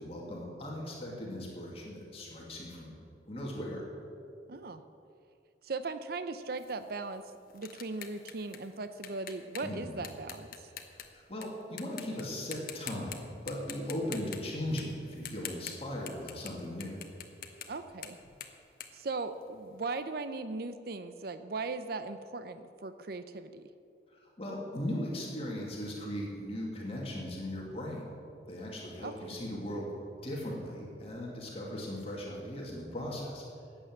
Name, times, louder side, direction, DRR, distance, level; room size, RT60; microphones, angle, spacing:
voice 1, 0.0-2.9 3.3-3.9 9.6-10.0 11.1-17.0 24.4-28.1 28.5-29.9 30.2-33.4, left 1 dB, 35° left, -3 dB, 2.3 m, -38 dB
voice 2, 4.5-4.8 5.6-7.2 7.5-10.7 17.7-18.2 18.9-23.7 29.0-29.3, right 3 dB, 55° right, 10 dB, 0.6 m, -38 dB
sound 1, 6.6-11.4 11.8-12.2 12.5-13.2 13.5-16.5 16.8-19.8, left 9 dB, 50° left, 1.1 m, -45 dB
14.5 x 9.1 x 7.4 m, 2.5 s
head